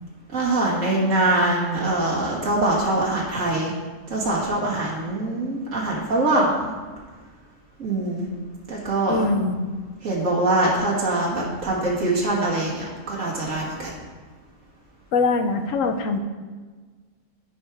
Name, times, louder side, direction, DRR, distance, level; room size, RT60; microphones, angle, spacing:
voice 1, 0.3-3.7 4.1-6.7 7.8-8.3 8.7-9.3 10.0-13.9, right 2 dB, 80° right, -5 dB, 2.0 m, -23 dB
voice 2, 9.1-9.7 15.1-16.2, left 3 dB, 80° left, 6 dB, 1.1 m, -22 dB
14.0 x 4.9 x 3.5 m, 1.4 s
omnidirectional pair, 1.3 m